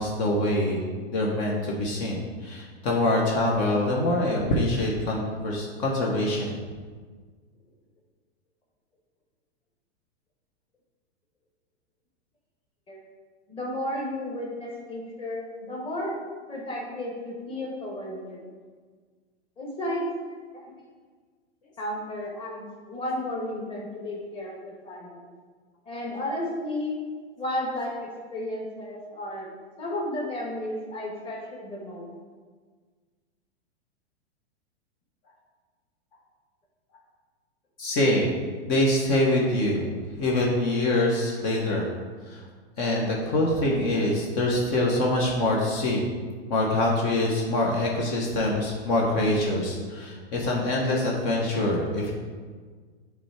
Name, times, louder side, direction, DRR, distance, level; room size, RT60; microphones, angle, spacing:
voice 1, 0.0-6.6 37.8-38.3 38.6-39.9 40.2-41.9 42.3-42.4 42.8-46.1 46.5-52.1, left 1 dB, 45° left, -2 dB, 1.2 m, -25 dB
voice 2, 13.5-16.2 16.5-18.4 19.6-20.0 21.8-25.2 25.8-27.0 27.4-29.5 29.8-32.1, left 1 dB, 15° left, -3 dB, 1.5 m, -33 dB
7.4 x 3.5 x 4.8 m, 1.5 s
hypercardioid pair, 130°, 33 cm